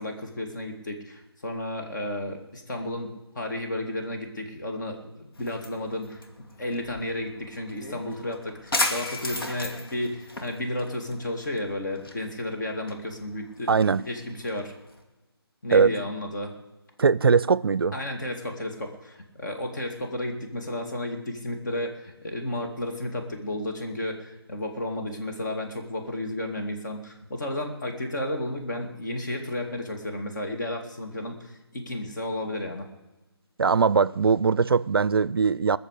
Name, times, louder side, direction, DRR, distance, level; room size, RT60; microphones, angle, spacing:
voice 1, 0.0-6.2 6.6-13.8 14.1-14.7 15.6-16.5 17.9-32.9, left 1 dB, 45° left, 2.6 m, -32 dB
sound 1, 5.3-15.0, left 2 dB, 60° left, 2.2 m, -36 dB
voice 2, 13.7-14.0 15.7-15.9 17.0-18.0 33.6-35.8, right 5 dB, 65° right, 0.5 m, -21 dB
19.5 x 6.9 x 8.3 m
figure-of-eight pair, 160°, 13 cm